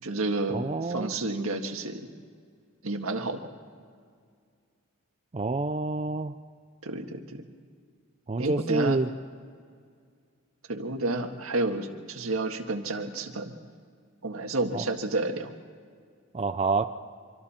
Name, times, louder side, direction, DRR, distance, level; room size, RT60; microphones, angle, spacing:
voice 1, 0.0-2.1 2.8-3.4 6.8-7.5 8.4-9.0 10.7-13.5 14.2-15.5, right 2 dB, 80° right, 5 dB, 1.8 m, -30 dB
voice 2, 0.5-1.1 5.3-6.3 8.3-9.1 14.7-14.8 16.3-16.9, right 3 dB, 30° right, 8 dB, 0.5 m, -28 dB
25.5 x 25.5 x 4.4 m, 2.1 s
head